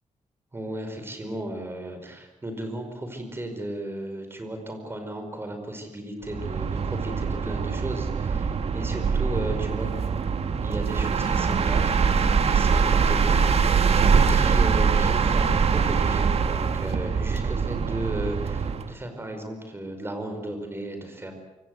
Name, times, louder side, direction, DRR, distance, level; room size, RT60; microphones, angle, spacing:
voice 1, 0.5-9.9 10.6-21.3, right 1 dB, 20° right, 6 dB, 5.0 m, -35 dB
sound 1, 6.2-18.9, right 5 dB, 50° right, 1.6 m, -23 dB
26.5 x 23.5 x 8.0 m, 1.0 s
wide cardioid pair, 160°, 13 cm